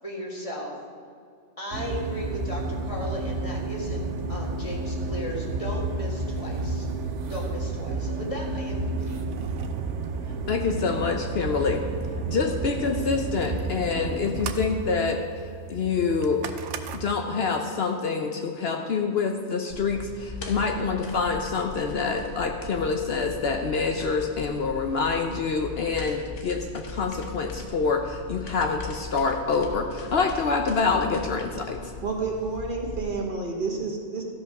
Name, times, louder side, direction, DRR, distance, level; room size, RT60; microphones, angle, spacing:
voice 1, 0.0-0.7 1.6-6.9 7.3-9.2, left 1 dB, 30° left, -2 dB, 1.7 m, -36 dB
sound 1, 1.7-17.1, right 3 dB, 80° right, 1.0 m, -31 dB
voice 2, 10.5-11.8 12.3-15.2 15.7-16.4 16.9-31.9, left 4 dB, 60° left, 4 dB, 0.9 m, -26 dB
sound 2, 19.7-33.0, left 3 dB, 85° left, 1.4 m, -39 dB
voice 3, 32.0-34.2, right 4 dB, 45° right, 0 dB, 1.4 m, -30 dB
14.0 x 5.4 x 5.9 m, 2.2 s
omnidirectional pair, 1.2 m